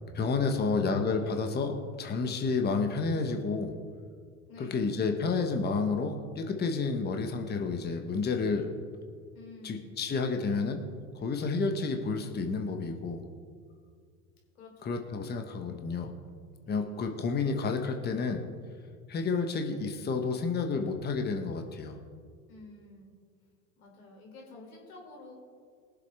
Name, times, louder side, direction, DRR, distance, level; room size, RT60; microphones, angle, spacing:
voice 1, 0.1-3.8 4.6-8.7 9.6-10.8 11.1-13.2 14.8-16.1 16.7-18.5 19.1-22.0, left 4 dB, 25° left, 4 dB, 1.3 m, -30 dB
voice 2, 4.5-5.0 9.3-9.9 14.6-15.0 16.7-16.9 22.5-23.1 23.8-25.3, left 3 dB, 90° left, -1 dB, 3.5 m, -50 dB
22.0 x 7.6 x 3.6 m, 2.1 s
hypercardioid pair, 95°, 42 cm